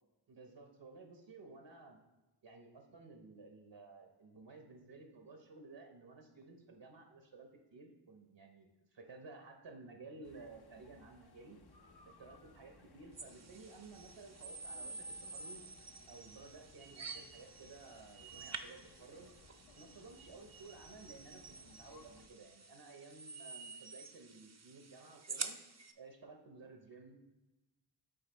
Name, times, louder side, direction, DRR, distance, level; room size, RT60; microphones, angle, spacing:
voice 1, 0.3-2.0 2.4-11.6 12.1-15.6 16.1-19.3 19.7-25.6 26.0-27.2, right 3 dB, 80° right, 4 dB, 0.9 m, -55 dB
sound 1, 10.2-22.3, left 3 dB, 65° left, 0.7 m, -63 dB
sound 2, 13.2-25.9, right 4 dB, 40° right, 0.5 m, -49 dB
7.9 x 4.1 x 4.0 m, 1.1 s
wide cardioid pair, 50°, 43 cm